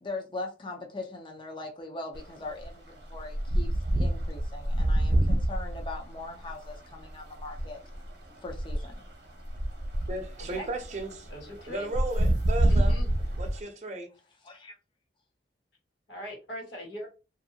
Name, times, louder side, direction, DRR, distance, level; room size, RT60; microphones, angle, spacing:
voice 1, 0.0-7.8 8.4-8.9 14.4-14.8, left 2 dB, 30° left, 0.5 m, -40 dB
sound 1, 2.1-2.3 2.6-13.6, right 1 dB, 70° right, 0.8 m, -28 dB
voice 2, 10.1-11.3 11.7-12.9 13.4-14.1, right 2 dB, 40° right, 0.6 m, -35 dB
voice 3, 11.3-11.9 12.7-13.1 16.1-17.1, equal, 90° left, 1.4 m, -40 dB
2.6 x 2.5 x 2.7 m
head